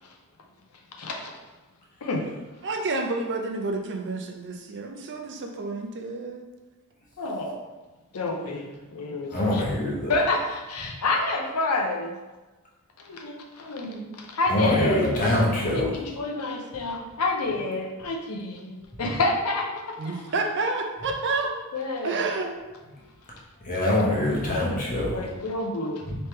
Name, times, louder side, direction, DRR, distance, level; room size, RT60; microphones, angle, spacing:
voice 1, 1.0-1.3 2.0-2.3 7.2-7.6 8.1-8.7 8.9-9.6 10.1-12.2 13.0-15.4 15.7-20.2 21.7-22.2 25.1-26.0, left 2 dB, 80° left, 1 dB, 0.6 m, -28 dB
voice 2, 2.6-6.5 20.0-21.6 22.0-22.6, right 3 dB, 55° right, 2 dB, 0.5 m, -29 dB
voice 3, 9.3-10.1 14.5-16.0 23.6-25.2 26.0-26.2, left 1 dB, 35° left, -4 dB, 1.0 m, -24 dB
3.3 x 3.2 x 4.3 m, 1.2 s
head